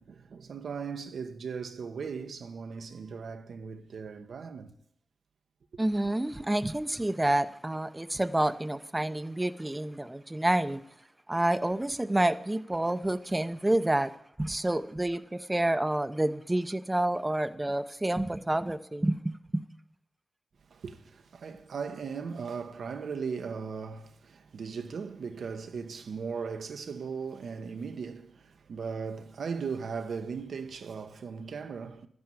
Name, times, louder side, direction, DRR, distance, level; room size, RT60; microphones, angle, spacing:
voice 1, 0.0-4.7 20.7-32.1, right 5 dB, 85° right, 1.2 m, -38 dB
voice 2, 5.8-10.8 11.3-14.1 14.4-19.6, right 1 dB, 15° right, 0.6 m, -28 dB
12.5 x 10.5 x 8.8 m
wide cardioid pair, 160°, 0 cm